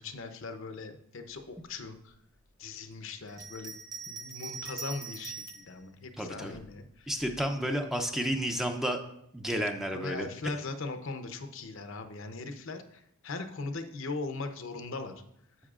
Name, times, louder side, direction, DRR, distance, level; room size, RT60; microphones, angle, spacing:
voice 1, 0.0-2.1 2.6-3.7 4.1-7.1 9.9-15.1, left 3 dB, 60° left, 7 dB, 0.7 m, -39 dB
Bell, 3.3-5.7 6.5-7.4, right 5 dB, 20° right, 0.9 m, -42 dB
voice 2, 6.2-6.6 7.1-9.0 9.3-10.3, equal, ahead, 4 dB, 0.5 m, -31 dB
9.7 x 7.9 x 2.4 m, 0.74 s
head